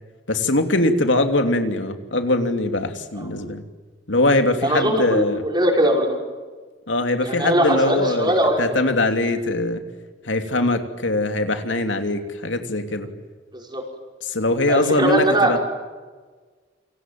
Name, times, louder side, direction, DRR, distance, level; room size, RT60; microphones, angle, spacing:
voice 1, 0.3-3.6 4.1-5.4 6.9-9.8 10.2-13.1 14.2-15.6, left 2 dB, 75° left, 6 dB, 3.0 m, -22 dB
voice 2, 4.6-6.2 7.2-8.8 13.5-13.8 14.7-15.6, right 1 dB, 25° right, 1 dB, 6.0 m, -20 dB
29.0 x 26.0 x 7.7 m, 1.4 s
head